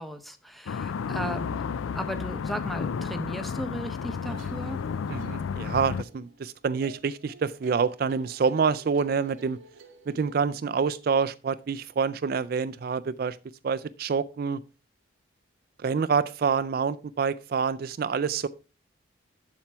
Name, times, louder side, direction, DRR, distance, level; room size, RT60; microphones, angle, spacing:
voice 1, 0.0-1.6 1.9-4.8, equal, ahead, 0.7 m, -36 dB
sound 1, 0.7-6.0, left 6 dB, 85° left, 0.4 m, -32 dB
sound 2, 3.9-10.3, right 3 dB, 80° right, 1.1 m, -50 dB
voice 2, 5.1-9.6 10.1-13.4 13.6-14.6 15.8-18.5, right 5 dB, 50° right, 0.3 m, -27 dB
7.3 x 7.1 x 4.5 m
head